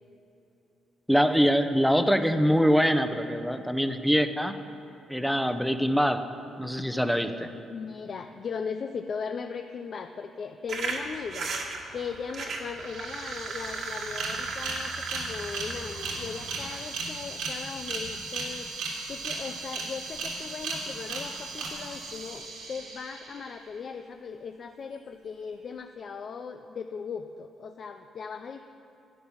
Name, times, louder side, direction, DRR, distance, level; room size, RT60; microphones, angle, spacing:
voice 1, 1.1-4.6 5.1-6.2 6.6-7.5, equal, ahead, 9 dB, 0.8 m, -24 dB
voice 2, 7.6-18.7 19.1-28.6, left 6 dB, 50° left, 6 dB, 0.5 m, -38 dB
sound 1, 10.7-16.8, right 3 dB, 65° right, 1.8 m, -36 dB
sound 2, 12.5-12.6 12.7-23.6, right 3 dB, 90° right, 3.1 m, -36 dB
11.5 x 9.7 x 7.1 m, 2.8 s
cardioid pair, 90°, 0 cm